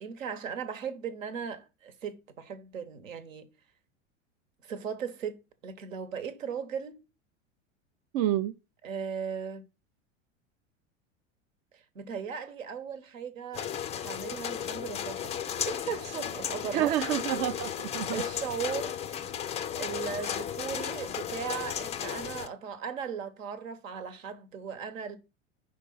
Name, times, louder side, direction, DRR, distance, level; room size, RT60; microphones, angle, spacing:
voice 1, 0.0-3.5 4.6-5.4 5.6-7.0 8.8-9.6 11.7-13.7 14.0-15.3 15.6-17.0 18.1-19.0 19.7-25.2, right 7 dB, 85° right, 1.1 m, -37 dB
voice 2, 8.1-8.5 16.7-18.2 20.2-20.3, right 12 dB, 50° right, 0.5 m, -29 dB
sound 1, 13.5-22.5, left 9 dB, 20° left, 0.3 m, -35 dB
5.2 x 3.8 x 5.4 m
hypercardioid pair, 90°, 38 cm